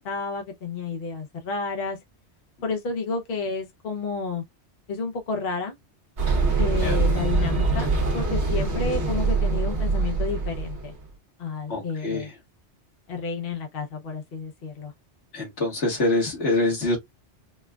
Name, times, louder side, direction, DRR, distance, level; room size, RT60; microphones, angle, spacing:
voice 1, 0.0-2.0 2.6-4.4 4.9-5.7 6.6-10.9 11.4-12.3 13.1-14.9, left 4 dB, 60° left, 1.0 m, -31 dB
sound 1, 6.2-11.0, right 3 dB, 70° right, 1.2 m, -24 dB
voice 2, 11.7-12.3 15.3-17.0, left 2 dB, 85° left, 2.0 m, -25 dB
4.3 x 2.3 x 2.3 m
omnidirectional pair, 1.2 m